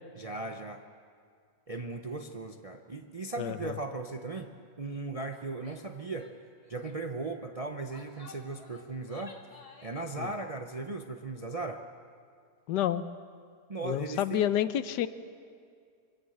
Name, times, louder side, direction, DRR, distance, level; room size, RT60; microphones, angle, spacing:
voice 1, 0.2-0.8 1.7-6.3 6.7-9.4 9.8-11.8 13.7-14.5, right 3 dB, 65° right, 5 dB, 0.3 m, -37 dB
Female speech woman speaking / Yell, 5.6-5.9 6.2-6.4 6.6-7.0 7.6-10.1, left 2 dB, 20° left, 1.6 m, -53 dB
voice 2, 12.7-13.0 13.8-15.1, left 11 dB, 80° left, 13 dB, 1.3 m, -29 dB
22.5 x 16.0 x 7.9 m, 2.2 s
omnidirectional pair, 1.9 m